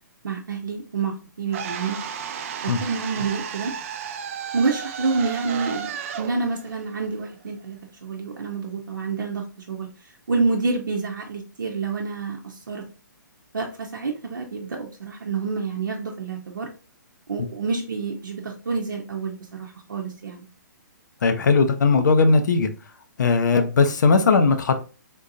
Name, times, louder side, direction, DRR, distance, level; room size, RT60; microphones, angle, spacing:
voice 1, 0.2-2.0 2.6-3.7 4.5-5.9 6.2-9.9 10.3-12.8 13.5-16.7 17.3-20.5, right 4 dB, 75° right, 0.7 m, -28 dB
sound 1, 1.5-7.6, right 8 dB, 40° right, 0.4 m, -33 dB
voice 2, 21.2-22.7 23.2-24.8, left 4 dB, 65° left, 0.6 m, -18 dB
3.7 x 2.7 x 2.6 m
figure-of-eight pair, 135°, 10 cm